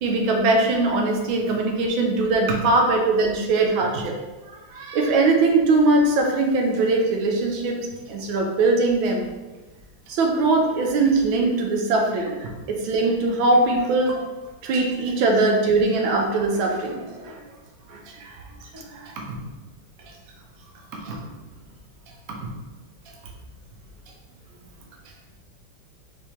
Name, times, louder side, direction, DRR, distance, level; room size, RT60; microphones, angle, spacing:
voice 1, 0.0-4.1 4.7-7.8 8.1-9.3 10.1-12.4 12.7-14.2 14.6-17.4 17.9-18.0, right 3 dB, 80° right, 1 dB, 1.4 m, -21 dB
voice 2, 18.0-18.5 18.7-19.4 20.1-20.2 20.9-21.3 22.4-22.5, right 3 dB, 60° right, -1 dB, 1.0 m, -37 dB
4.5 x 3.4 x 3.0 m, 1.2 s
omnidirectional pair, 2.2 m